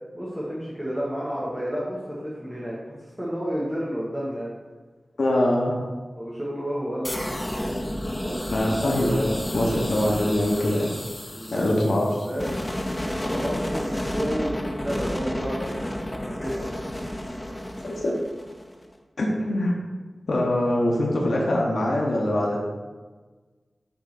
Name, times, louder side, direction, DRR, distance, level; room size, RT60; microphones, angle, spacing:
voice 1, 0.1-4.5 6.2-7.9 8.2-8.4 11.3-12.5 13.1-16.7, equal, 5° right, -7 dB, 1.3 m, -31 dB
voice 2, 5.2-5.7 8.5-10.9 11.5-12.1 17.8-18.1 19.2-19.7 20.3-22.7, left 1 dB, 80° left, -2 dB, 1.0 m, -23 dB
sound 1, 7.0-18.8, left 1 dB, 20° left, 0.7 m, -31 dB
5.8 x 3.6 x 5.9 m, 1.4 s
wide cardioid pair, 90°, 0 cm